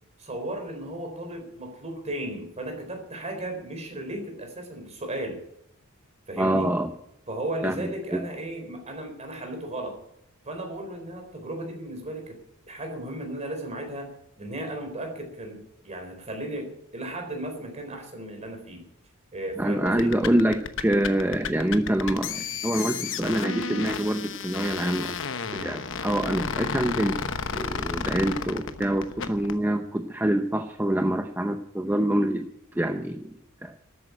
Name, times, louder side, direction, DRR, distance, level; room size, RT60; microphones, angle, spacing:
voice 1, 0.2-5.4 6.3-6.7 7.3-10.0 10.4-12.4 12.7-14.1 14.4-18.8 19.3-20.2, right 1 dB, 30° right, 4 dB, 4.2 m, -35 dB
voice 2, 6.4-6.9 7.6-8.2 19.6-25.1 25.5-27.2 27.5-32.5 32.7-33.3 33.6-33.7, right 1 dB, 10° right, 5 dB, 0.7 m, -26 dB
sound 1, 19.9-29.6, left 5 dB, 60° left, 1.0 m, -32 dB
13.0 x 8.9 x 9.9 m, 0.77 s
head